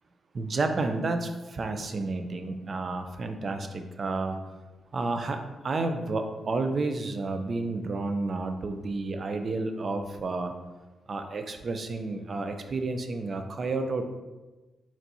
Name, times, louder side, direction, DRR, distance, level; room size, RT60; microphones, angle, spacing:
voice 1, 0.3-4.4 4.9-10.5 11.1-14.0, right 3 dB, 50° right, 7 dB, 0.5 m, -31 dB
4.4 x 4.3 x 2.7 m, 1.2 s
supercardioid pair, 45°, 0 cm